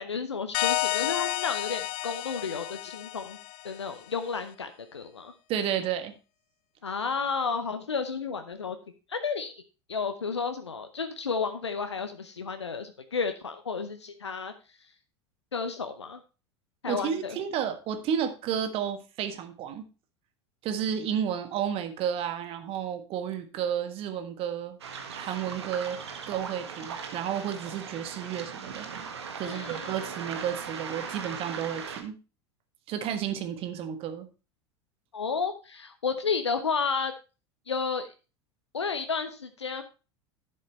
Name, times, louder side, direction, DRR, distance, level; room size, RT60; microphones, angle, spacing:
voice 1, 0.0-3.4 3.6-5.3 6.8-8.8 9.1-9.5 9.9-14.5 15.5-16.2 16.8-17.4 29.4-30.1 35.1-37.1 37.7-38.1 38.7-39.8, left 5 dB, 80° left, 8 dB, 0.8 m, -32 dB
sound 1, 0.5-4.0, left 19 dB, 45° left, 0.4 m, -31 dB
voice 2, 5.5-6.1 16.8-19.8 20.6-24.8 25.2-26.0 26.3-28.9 29.4-32.2 32.9-34.3, right 9 dB, 40° right, 9 dB, 1.5 m, -32 dB
Waves surf, 24.8-32.0, right 6 dB, 70° right, 1.5 m, -39 dB
11.5 x 7.7 x 3.1 m, 0.32 s
figure-of-eight pair, 75°, 14 cm